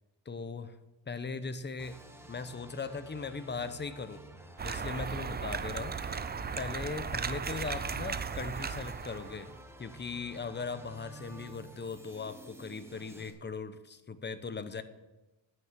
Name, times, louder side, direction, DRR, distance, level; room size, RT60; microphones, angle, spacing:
voice 1, 0.3-0.8 1.1-2.0 2.3-4.2 4.6-6.3 6.6-9.5 9.8-14.8, left 4 dB, 25° left, 12 dB, 0.9 m, -39 dB
sound 1, 1.8-13.3, right 2 dB, 5° right, 1.6 m, -52 dB
sound 2, 4.6-9.5, right 6 dB, 20° right, 0.6 m, -36 dB
9.6 x 9.3 x 6.9 m, 1.1 s
cardioid pair, 100°, 46 cm